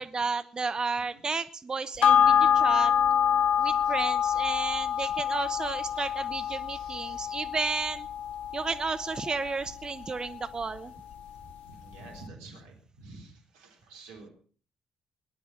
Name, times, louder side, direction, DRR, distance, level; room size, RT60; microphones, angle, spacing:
voice 1, 0.0-2.9 3.6-8.1 8.5-10.9, right 4 dB, 35° right, 13 dB, 1.0 m, -32 dB
sound 1, 2.0-10.8 11.1-11.2, left 8 dB, 65° left, 1.1 m, -26 dB
voice 2, 3.6-3.9 4.3-4.4 5.0-5.1 5.9-6.0 6.3-7.4 11.4-14.3, right 3 dB, 80° right, 2 dB, 3.6 m, -50 dB
19.0 x 11.5 x 6.0 m, 0.43 s
hypercardioid pair, 45°, 2 cm